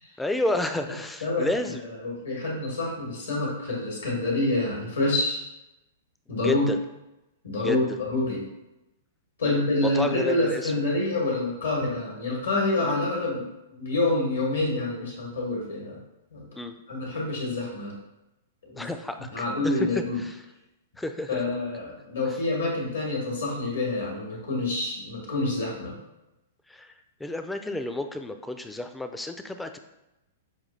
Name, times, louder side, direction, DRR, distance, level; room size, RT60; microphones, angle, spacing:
voice 1, 0.2-1.8 6.3-6.8 7.6-7.8 9.4-10.7 12.8-12.9 16.6-16.7 18.7-19.9 20.2-20.4 21.0-21.4 26.7-26.9 27.2-29.8, left 1 dB, 5° left, 7 dB, 0.3 m, -31 dB
voice 2, 1.8-5.4 6.3-6.6 7.4-8.4 9.4-16.0 16.3-16.5 16.9-17.9 18.6-18.9 19.3-20.2 21.3-25.9, left 2 dB, 80° left, -2 dB, 1.5 m, -27 dB
6.0 x 2.3 x 2.6 m, 0.94 s
hypercardioid pair, 110°, 0 cm